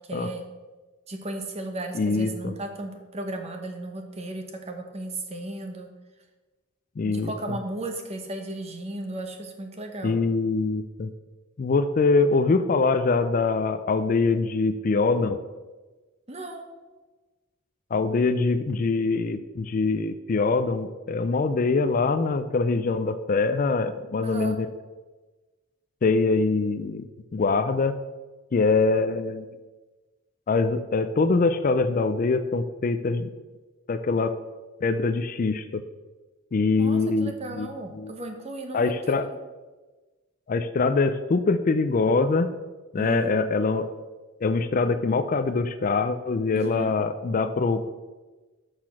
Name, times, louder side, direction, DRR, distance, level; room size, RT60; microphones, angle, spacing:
voice 1, 0.1-0.4 1.1-5.9 7.0-10.2 16.3-16.6 24.2-24.6 36.8-38.9 43.0-43.3 46.5-46.9, right 2 dB, 30° right, 4 dB, 0.9 m, -35 dB
voice 2, 1.9-2.5 7.0-7.3 10.0-11.1 11.6-15.4 17.9-24.7 26.0-27.0 27.3-27.9 28.5-29.5 30.5-33.3 33.9-34.3 34.8-35.8 36.5-37.7 37.9-38.1 38.7-39.3 40.5-42.5 42.9-43.9 44.4-47.9, left 3 dB, 40° left, 11 dB, 0.4 m, -23 dB
6.7 x 5.9 x 5.8 m, 1.2 s
head